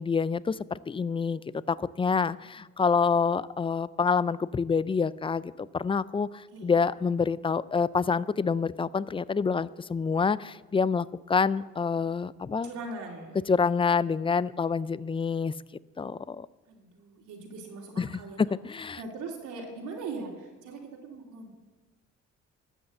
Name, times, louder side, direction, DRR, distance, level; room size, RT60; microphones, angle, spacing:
voice 1, 0.0-1.4 1.7-12.7 13.5-15.5 16.0-16.5 18.0-18.2 18.5-19.0, left 5 dB, 20° left, 19 dB, 0.3 m, -27 dB
voice 2, 12.6-13.4 16.7-18.4 19.0-21.5, right 3 dB, 85° right, -2 dB, 2.6 m, -40 dB
12.5 x 8.0 x 7.7 m, 1.2 s
cardioid pair, 90°, 30 cm